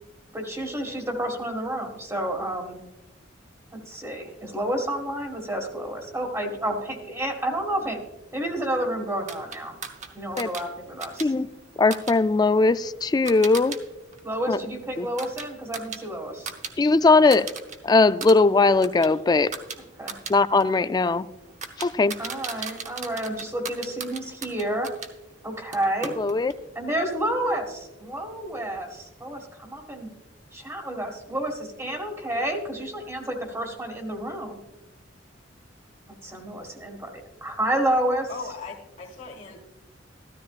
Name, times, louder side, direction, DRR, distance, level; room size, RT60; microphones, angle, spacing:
voice 1, 0.3-2.8 3.8-8.0 8.3-9.7 10.1-11.3 14.2-16.5 20.0-20.1 22.2-24.9 25.4-26.1 26.7-30.1 30.5-34.6 36.2-38.3, right 1 dB, 15° right, 2 dB, 1.7 m, -30 dB
sound 1, 9.3-13.8 14.1-16.7 17.0-17.8 18.1-25.1 25.7-26.6, right 5 dB, 40° right, 0.9 m, -38 dB
voice 2, 11.8-13.8 14.5-14.6 15.0-15.1 16.8-17.5 17.8-19.5 20.3-21.3 21.8-22.1 26.2-26.5, left 3 dB, 20° left, 14 dB, 0.3 m, -19 dB
voice 3, 38.3-39.6, left 4 dB, 40° left, -3 dB, 1.8 m, -38 dB
14.0 x 13.0 x 2.4 m, 0.97 s
head